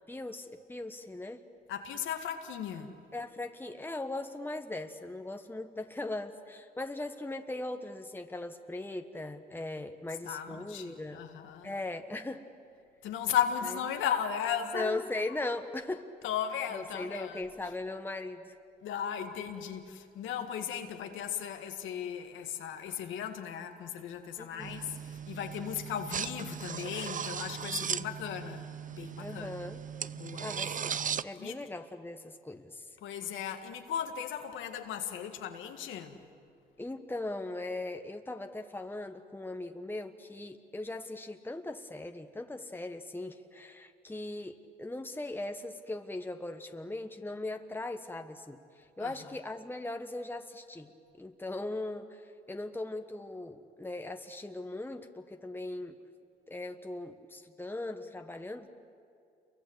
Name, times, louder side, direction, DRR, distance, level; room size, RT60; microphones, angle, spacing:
voice 1, 0.1-1.4 3.1-11.2 11.6-12.4 14.7-16.1 16.7-18.5 24.4-24.8 27.6-27.9 29.2-29.8 30.4-32.8 36.8-50.9 51.2-55.9 56.5-58.7, left 2 dB, 10° left, 1.4 m, -39 dB
voice 2, 1.7-2.9 10.2-11.7 13.0-15.2 16.2-17.4 18.8-29.6 30.1-30.8 31.4-31.6 33.0-36.2 49.0-49.1, left 9 dB, 90° left, 1.9 m, -36 dB
sound 1, 24.6-31.2, right 7 dB, 45° right, 0.6 m, -37 dB
28.0 x 23.5 x 8.1 m
cardioid pair, 70°, 19 cm